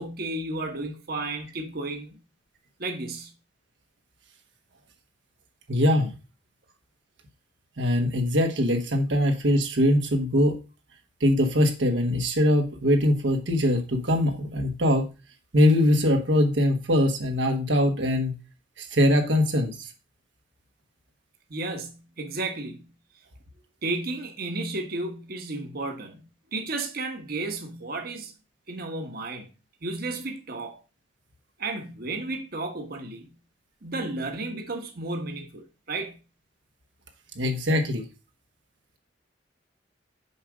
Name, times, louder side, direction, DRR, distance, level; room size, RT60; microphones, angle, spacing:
voice 1, 0.0-2.2 2.8-3.3 21.5-22.9 23.8-28.3 28.7-29.5 29.8-30.8 31.6-33.3 33.8-36.2, right 2 dB, 55° right, 1.2 m, -33 dB
voice 2, 5.7-6.1 7.8-10.6 11.2-15.1 15.5-18.4 18.8-19.9 37.3-38.0, left 1 dB, 85° right, 1.3 m, -22 dB
7.1 x 5.0 x 4.9 m
head